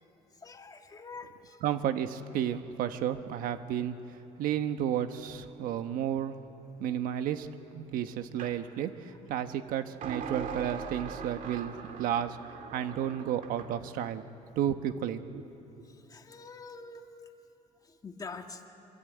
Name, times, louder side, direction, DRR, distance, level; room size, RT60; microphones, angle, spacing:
voice 1, 0.4-1.6 15.9-17.1 17.9-18.6, left 4 dB, 25° left, 5 dB, 1.7 m, -45 dB
voice 2, 1.6-6.4 6.8-12.4 12.7-14.3 14.6-15.4, right 10 dB, 85° right, 9 dB, 1.3 m, -32 dB
sound 1, 8.4-8.6 10.0-13.8, right 6 dB, 65° right, 2.1 m, -41 dB
25.0 x 23.5 x 9.3 m, 2.9 s
cardioid pair, 135°, 14 cm